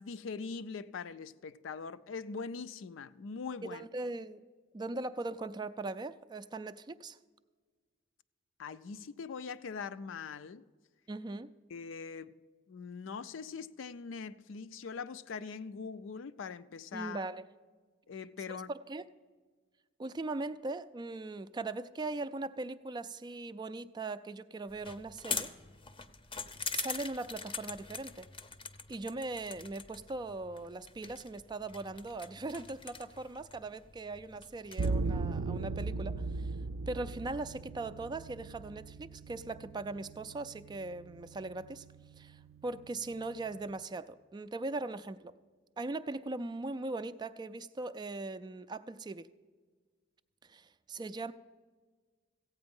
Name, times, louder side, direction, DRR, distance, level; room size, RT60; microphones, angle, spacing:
voice 1, 0.0-3.8 8.6-10.6 11.7-12.4 12.7-17.3 18.1-18.7, left 5 dB, 70° left, 0.4 m, -42 dB
voice 2, 3.6-4.4 4.7-7.2 11.1-11.5 16.9-17.4 18.7-19.0 20.0-25.5 26.7-28.3 28.9-36.5 36.9-41.9 42.2-45.3 45.8-49.3 50.5-51.3, right 2 dB, 20° right, 0.3 m, -40 dB
sound 1, 24.7-34.9, left 5 dB, 25° left, 0.6 m, -43 dB
sound 2, 34.8-43.8, right 3 dB, 85° right, 0.5 m, -39 dB
15.0 x 8.8 x 5.3 m
head